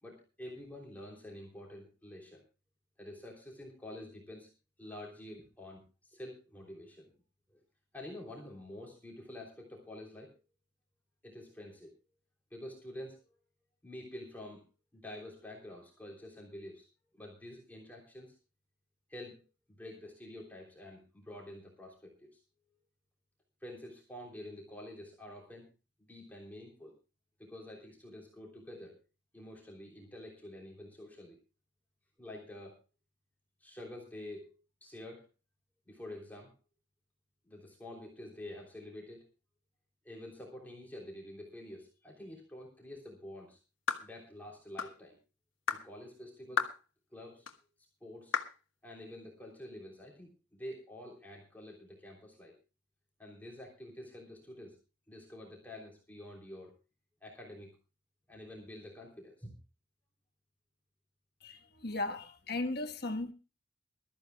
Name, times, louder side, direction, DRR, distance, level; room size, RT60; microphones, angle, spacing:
voice 1, 0.0-2.4 3.0-4.5 4.8-7.2 7.5-7.6 7.9-10.4 11.2-11.9 12.5-13.2 13.8-14.6 14.9-16.8 17.1-18.4 19.1-22.4 23.6-25.7 26.1-27.0 27.4-29.0 29.3-31.4 32.2-32.8 33.6-35.3 35.9-36.6 37.5-39.3 40.0-43.6 44.0-45.2 45.7-46.7 47.1-47.5 48.0-48.4 48.8-52.6 53.2-54.8 55.1-56.7 57.2-57.7 58.3-59.5, left 1 dB, 10° left, 3.2 m, -48 dB
sound 1, 43.9-44.1 44.8-45.0 45.7-45.9 46.6-46.8 47.5-47.6 48.3-48.6, left 5 dB, 90° left, 1.4 m, -33 dB
voice 2, 61.4-63.3, left 2 dB, 55° left, 1.4 m, -36 dB
23.5 x 13.5 x 2.3 m
head